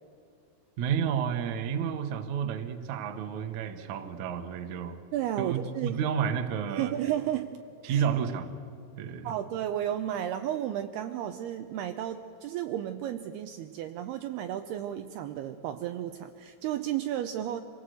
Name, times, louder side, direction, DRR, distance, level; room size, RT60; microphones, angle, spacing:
voice 1, 0.8-5.0 5.4-6.9 7.8-8.5 9.0-9.3, right 7 dB, 70° right, 7 dB, 1.8 m, -31 dB
voice 2, 5.1-6.0 6.7-7.5 7.8-8.0 9.2-17.6, right 11 dB, 90° right, 7 dB, 2.2 m, -33 dB
26.0 x 18.5 x 8.0 m, 2.4 s
omnidirectional pair, 5.5 m